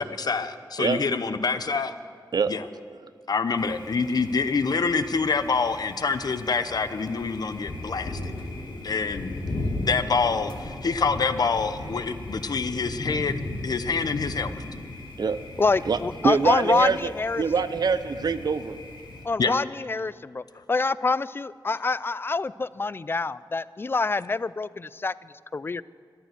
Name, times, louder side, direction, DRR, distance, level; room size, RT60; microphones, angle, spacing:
voice 1, 0.0-1.9 2.5-2.6 3.3-8.3 8.8-9.4 9.8-13.4 13.6-14.6 19.4-19.6, left 4 dB, 60° left, 11 dB, 0.7 m, -26 dB
Thunder, 3.6-19.2, left 2 dB, 80° left, 2.2 m, -37 dB
voice 2, 15.6-17.4 19.2-20.4 20.7-25.1 25.5-25.8, left 3 dB, 30° left, 18 dB, 0.3 m, -26 dB
voice 3, 16.2-17.1 17.4-18.8, right 5 dB, 60° right, 12 dB, 0.6 m, -24 dB
13.5 x 10.5 x 7.9 m, 2.3 s
wide cardioid pair, 105°, 8 cm